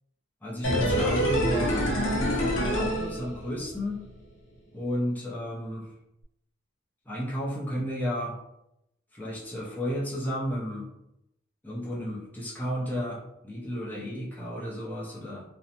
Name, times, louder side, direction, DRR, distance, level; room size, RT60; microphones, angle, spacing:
voice 1, 0.4-4.0 4.7-5.9 7.1-8.3 9.1-10.9 11.6-15.4, equal, 10° left, -7 dB, 0.6 m, -33 dB
sound 1, 0.6-3.8 4.0-4.1, equal, 70° left, 0.6 m, -26 dB
2.6 x 2.1 x 2.8 m, 0.84 s
head